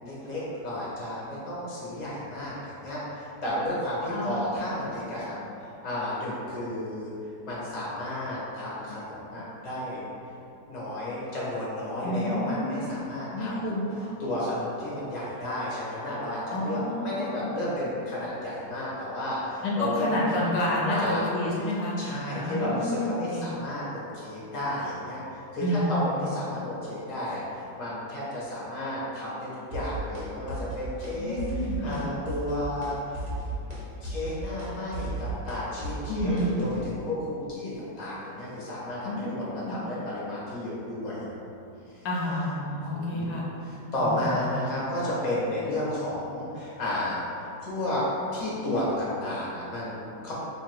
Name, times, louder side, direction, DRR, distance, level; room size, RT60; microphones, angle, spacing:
voice 1, 0.0-7.1 7.5-10.0 10.7-13.7 14.2-20.1 20.3-20.5 20.8-21.3 22.0-23.8 24.1-33.0 34.0-37.2 37.5-41.3 42.7-43.4 43.7-48.0 48.3-50.3, left 1 dB, 30° left, -8 dB, 0.8 m, -32 dB
voice 2, 4.1-4.4 12.0-12.8 13.3-14.1 16.5-17.5 19.6-22.0 22.4-23.5 25.6-26.3 31.2-32.0 36.1-36.5 39.0-39.8 42.0-43.5 44.0-44.6, left 1 dB, 75° left, -4 dB, 1.2 m, -29 dB
sound 1, 29.7-30.2 30.5-31.1 31.4-32.0 32.3-32.9 33.1-36.8, right 2 dB, 85° right, 0.3 m, -34 dB
2.8 x 2.8 x 4.4 m, 2.8 s
omnidirectional pair, 1.9 m